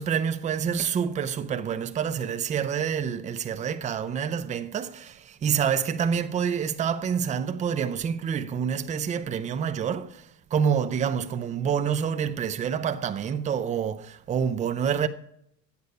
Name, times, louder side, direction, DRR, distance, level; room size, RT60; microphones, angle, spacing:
voice 1, 0.0-15.1, right 7 dB, 15° right, 0.4 m, -27 dB
10.5 x 8.2 x 5.5 m
hypercardioid pair, 100°, 49 cm